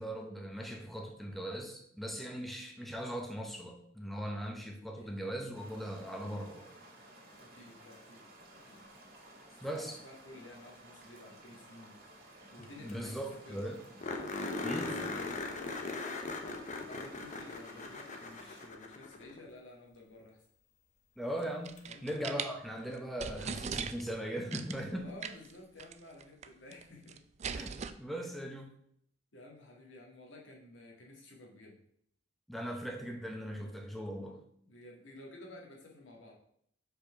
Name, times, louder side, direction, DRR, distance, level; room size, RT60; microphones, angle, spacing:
voice 1, 0.0-6.7 9.6-10.0 12.8-13.8 14.6-14.9 21.2-25.1 27.5-28.7 32.5-34.4, equal, ahead, 2 dB, 0.8 m, -39 dB
sound 1, 5.5-18.7, right 1 dB, 50° right, 2.1 m, -56 dB
voice 2, 7.4-8.2 8.5-8.8 9.5-12.0 12.5-13.7 14.4-16.4 16.9-20.4 21.8-22.1 25.0-27.2 28.1-28.3 29.3-31.8 34.6-36.3, left 1 dB, 85° left, 0 dB, 1.7 m, -53 dB
sound 2, 12.6-12.7 12.9-13.0 13.3-13.4 14.0-19.4 21.8-21.9 24.7-24.8, left 3 dB, 40° left, 0.8 m, -39 dB
sound 3, 21.4-22.5 22.9-23.0 23.2-24.2 24.5-24.8 25.2-25.5 25.8-25.9 26.2-26.8 27.1-27.9, right 6 dB, 35° right, 0.4 m, -39 dB
5.3 x 4.4 x 5.7 m, 0.70 s
head